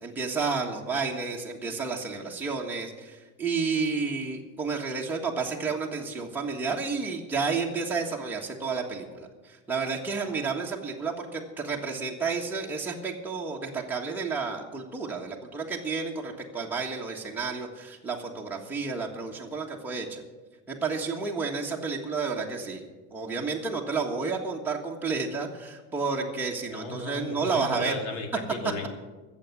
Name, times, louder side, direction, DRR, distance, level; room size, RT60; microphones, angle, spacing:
voice 1, 0.0-20.2 20.7-22.8 23.1-28.0, right 4 dB, 5° right, -2 dB, 1.5 m, -31 dB
voice 2, 26.7-28.9, left 3 dB, 75° left, 5 dB, 2.6 m, -35 dB
15.0 x 7.2 x 9.5 m, 1.3 s
supercardioid pair, 135°, 37 cm